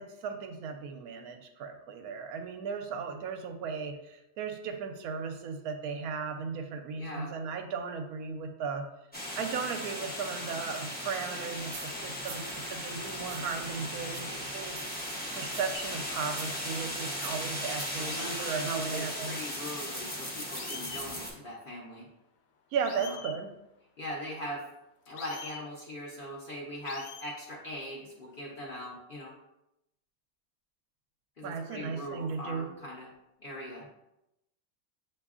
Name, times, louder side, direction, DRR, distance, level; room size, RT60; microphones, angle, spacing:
voice 1, 0.0-8.9 9.3-14.8 15.3-19.4 22.7-23.5 31.4-32.7, right 5 dB, 80° right, 5 dB, 1.1 m, -36 dB
voice 2, 7.0-7.3 17.9-22.1 23.1-23.2 24.0-24.6 25.1-29.3 31.4-33.1 33.4-33.9, left 1 dB, 50° left, -3 dB, 0.7 m, -41 dB
sound 1, 9.1-21.3, equal, 10° left, 0.5 m, -37 dB
sound 2, 11.5-19.2, right 5 dB, 60° right, 0.7 m, -50 dB
sound 3, 15.7-15.9 18.1-18.3 20.1-20.2 20.5-21.1 22.8-23.4 25.1-25.6 26.9-27.4 28.3-28.6, left 6 dB, 70° left, 1.0 m, -44 dB
6.8 x 2.7 x 2.4 m, 0.87 s
omnidirectional pair, 1.5 m